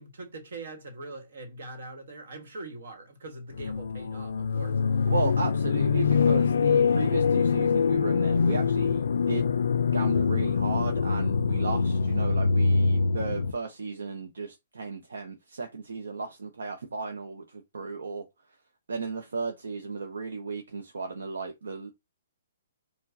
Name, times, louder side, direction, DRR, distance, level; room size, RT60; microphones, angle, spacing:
voice 1, 0.0-5.1, right 2 dB, 70° right, 1.3 m, -42 dB
sound 1, 3.6-13.5, left 5 dB, 80° left, 0.3 m, -24 dB
voice 2, 5.1-9.4 9.9-18.2 18.9-21.9, right 4 dB, 90° right, 0.6 m, -35 dB
4.5 x 2.1 x 2.6 m
hypercardioid pair, 150°, 0 cm